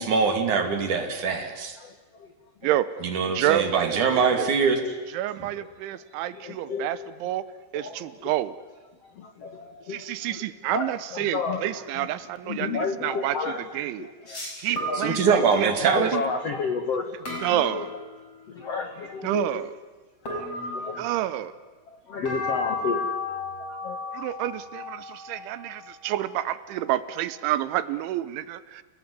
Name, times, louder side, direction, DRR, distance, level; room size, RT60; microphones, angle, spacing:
voice 1, 0.0-1.8 3.0-4.8 15.0-16.2, right 5 dB, 45° right, 6 dB, 3.3 m, -23 dB
voice 2, 1.8-2.3 6.3-7.0 7.7-8.3 9.0-10.4 10.7-12.1 12.4-14.4 14.7-15.0 15.3-15.4 15.8-17.9 18.5-19.6 20.2-21.0 21.9-24.0, left 5 dB, 60° left, 6 dB, 1.6 m, -32 dB
voice 3, 3.3-4.5 5.1-7.4 7.7-8.6 9.9-13.4 13.7-16.1 17.4-17.9 19.2-19.7 21.0-21.5 24.1-28.8, right 13 dB, 80° right, 15 dB, 3.2 m, -29 dB
sound 1, 11.7-11.9 14.3-15.7 17.3-18.5 20.3-21.5 22.3-26.8, left 2 dB, 30° left, 6.9 m, -35 dB
29.0 x 18.0 x 9.7 m, 1.4 s
omnidirectional pair, 5.6 m